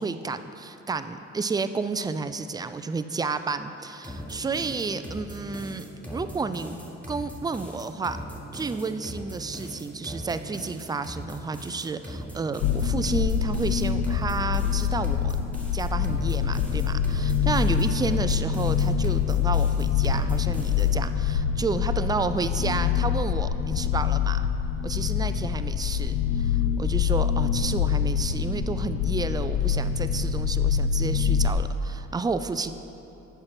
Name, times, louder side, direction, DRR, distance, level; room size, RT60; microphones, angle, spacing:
voice 1, 0.0-5.9 6.1-6.8 7.1-8.2 8.5-15.4 15.7-24.5 24.8-32.7, right 4 dB, 15° right, 11 dB, 0.3 m, -31 dB
sound 1, 4.0-21.1, equal, 5° left, 1.4 m, -39 dB
sound 2, 12.6-31.5, left 8 dB, 80° left, 0.5 m, -25 dB
7.8 x 5.7 x 5.9 m, 3.0 s
cardioid pair, 90°, 30 cm